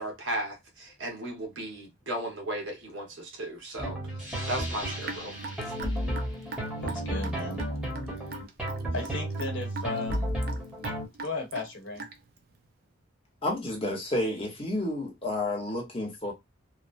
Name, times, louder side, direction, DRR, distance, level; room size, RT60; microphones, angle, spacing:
voice 1, 0.0-4.0 4.5-5.4, right 1 dB, 65° right, 1.1 m, -35 dB
sound 1, 3.8-11.1, equal, 5° right, 1.0 m, -33 dB
Raindrop / Drip, 5.0-12.4, right 4 dB, 50° right, 0.5 m, -41 dB
voice 2, 6.8-7.6 8.1-8.4 8.9-10.3 11.2-12.1, left 3 dB, 65° left, 1.1 m, -35 dB
voice 3, 13.4-16.3, left 1 dB, 25° left, 0.8 m, -30 dB
3.0 x 2.0 x 2.5 m
head